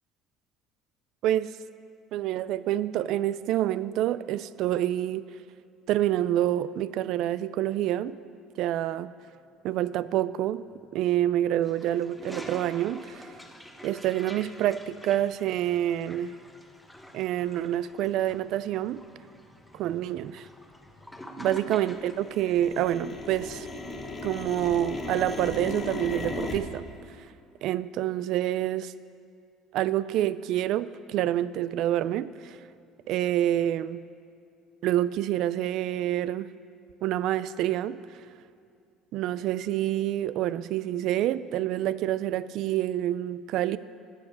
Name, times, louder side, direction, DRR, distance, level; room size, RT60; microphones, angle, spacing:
voice 1, 1.2-1.6 2.1-5.3 5.9-8.2 8.6-9.1 9.6-13.3 13.8-16.3 17.1-19.0 19.7-20.5 21.4-23.7 24.2-26.8 27.6-28.9 29.7-32.6 33.1-34.0 34.8-36.5 37.0-38.0 39.1-43.8, right 12 dB, 60° right, 17 dB, 0.3 m, -27 dB
Toilet flush, 11.6-22.3, equal, ahead, 0.8 m, -46 dB
sound 1, 15.7-15.8 16.4-16.6 17.2-17.5 18.0-18.1 18.3-18.9 19.1-21.5 21.7-26.6, left 3 dB, 25° left, 1.0 m, -37 dB
14.0 x 7.0 x 5.2 m, 2.4 s
cardioid pair, 145°, 0 cm